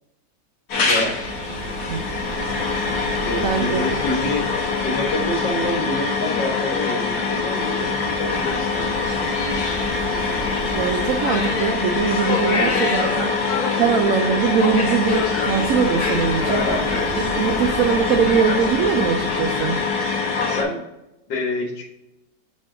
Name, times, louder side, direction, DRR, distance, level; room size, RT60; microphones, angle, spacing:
sound 1, 0.7-20.6, left 4 dB, 60° left, 1.6 m, -23 dB
voice 1, 0.8-1.2 3.1-4.5 4.8-8.9 16.4-16.9 20.5-20.8 21.3-21.8, left 1 dB, 75° left, 0 dB, 2.2 m, -27 dB
sound 2, 1.0-19.9, right 3 dB, 40° right, 1.1 m, -35 dB
voice 2, 3.4-3.8 10.7-13.4 13.8-16.6 17.2-19.8, right 7 dB, 80° right, 5 dB, 0.7 m, -21 dB
6.3 x 4.2 x 3.8 m, 0.93 s
omnidirectional pair, 2.0 m